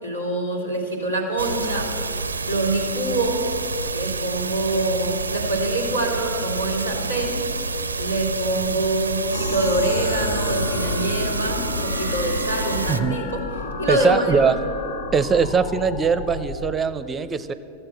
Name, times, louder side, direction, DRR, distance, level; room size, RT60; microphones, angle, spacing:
voice 1, 0.0-1.9 2.5-3.4 3.9-7.4 8.0-13.4 13.8-14.4, right 2 dB, 90° left, -1 dB, 2.4 m, -25 dB
sound 1, 1.4-13.0, right 3 dB, 75° right, 0.4 m, -28 dB
sound 2, 9.3-16.8, left 4 dB, 60° left, 0.6 m, -31 dB
voice 2, 12.9-13.2 13.9-14.6 15.1-17.5, right 5 dB, 20° right, 13 dB, 0.5 m, -21 dB
14.5 x 7.7 x 7.7 m, 3.0 s
figure-of-eight pair, 90°, 0 cm